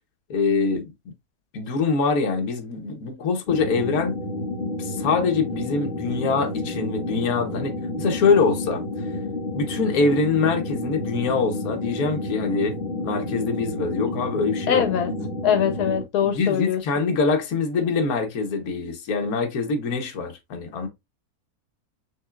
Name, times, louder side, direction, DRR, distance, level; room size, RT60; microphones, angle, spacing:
voice 1, 0.3-0.9 1.5-4.2 4.6-8.8 9.5-15.3 16.2-20.9, left 4 dB, 70° left, 1.4 m, -24 dB
sound 1, 3.5-16.0, left 2 dB, 40° left, 1.1 m, -30 dB
voice 2, 14.7-15.1 15.4-16.8, left 9 dB, 90° left, 1.3 m, -22 dB
6.0 x 3.3 x 2.4 m
omnidirectional pair, 1.6 m